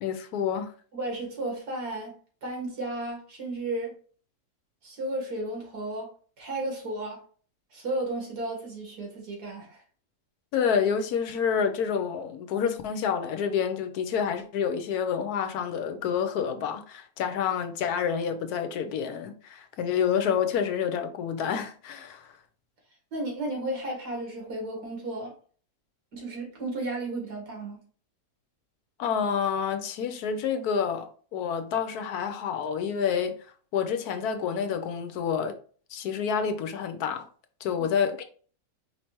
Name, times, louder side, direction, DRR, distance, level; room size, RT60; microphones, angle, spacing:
voice 1, 0.0-0.7 10.5-22.3 29.0-33.4 33.7-35.5 35.9-37.3 37.6-38.2, left 7 dB, 75° left, 1.2 m, -28 dB
voice 2, 0.9-2.2 2.4-4.0 4.8-6.1 6.4-7.2 7.7-9.8 23.1-25.4 26.1-27.8 37.8-37.9, right 2 dB, 85° right, 2.5 m, -33 dB
4.9 x 3.3 x 2.9 m
omnidirectional pair, 1.6 m